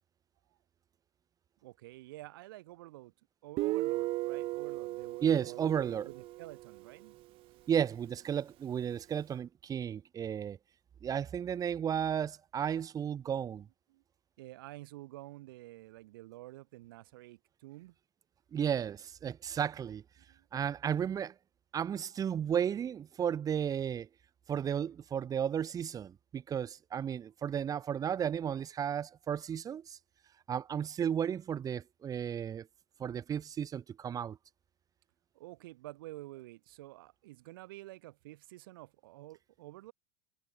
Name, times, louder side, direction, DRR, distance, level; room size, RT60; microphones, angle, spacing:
voice 1, 1.6-3.1 3.4-7.2 13.9-14.0 14.4-17.9 20.3-20.5 35.3-39.9, right 18 dB, 60° right, 7.7 m, -49 dB
Guitar, 3.6-7.1, right 18 dB, 45° right, 6.5 m, -36 dB
voice 2, 5.2-6.0 7.7-10.6 11.0-13.7 18.5-20.0 20.5-21.3 21.7-24.1 24.5-30.0 30.5-32.7 33.0-34.4, right 8 dB, 30° right, 4.6 m, -33 dB
figure-of-eight pair, 90°, 13 cm